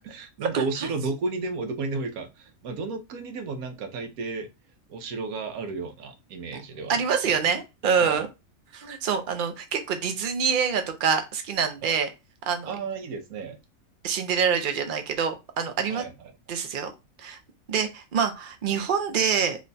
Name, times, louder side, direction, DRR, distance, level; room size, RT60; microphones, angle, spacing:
voice 1, 0.1-4.5 4.9-7.4 8.0-8.3 11.8-12.0 12.7-13.6 15.9-16.1, right 4 dB, 85° right, 1.1 m, -33 dB
voice 2, 6.9-8.3 8.7-12.1 12.5-12.7 14.0-16.0 16.5-16.9 17.2-17.4 17.7-19.6, right 6 dB, 60° right, 0.5 m, -26 dB
3.1 x 2.2 x 3.9 m
omnidirectional pair, 1.5 m